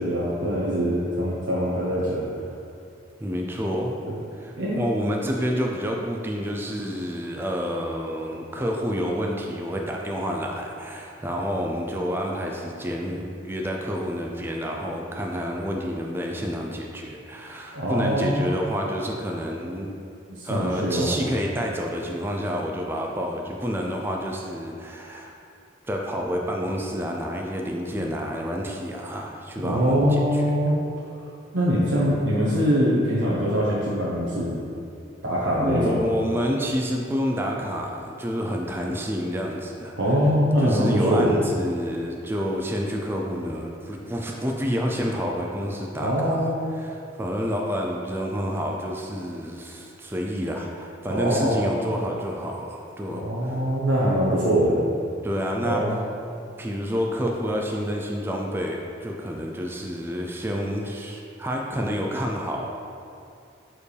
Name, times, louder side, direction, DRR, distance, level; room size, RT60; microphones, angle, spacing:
voice 1, 0.0-2.2 4.6-4.8 17.7-18.4 20.3-21.1 29.6-30.7 31.5-34.6 35.2-36.0 40.0-41.4 46.0-46.7 51.1-51.7 53.1-54.8 55.6-56.0, equal, 80° right, -8 dB, 0.9 m, -23 dB
voice 2, 3.2-3.9 4.3-19.9 20.4-25.3 25.8-30.5 35.5-40.0 40.6-53.6 55.2-55.8 56.6-62.7, equal, 10° right, -1 dB, 0.4 m, -29 dB
7.1 x 4.5 x 3.3 m, 2.5 s
head